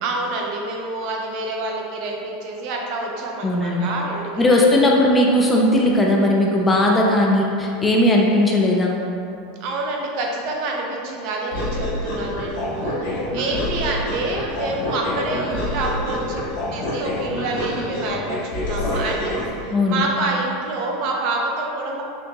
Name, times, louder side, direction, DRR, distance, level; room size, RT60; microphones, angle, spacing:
voice 1, 0.0-4.7 9.6-16.4 16.7-22.0, right 2 dB, 50° right, 0 dB, 0.5 m, -27 dB
voice 2, 3.4-4.0 4.4-9.0 19.7-20.0, left 1 dB, 10° left, -2 dB, 0.3 m, -17 dB
sound 1, 11.5-19.5, left 1 dB, 80° left, 1.4 m, -27 dB
4.3 x 2.8 x 2.8 m, 2.6 s
supercardioid pair, 155°, 0 cm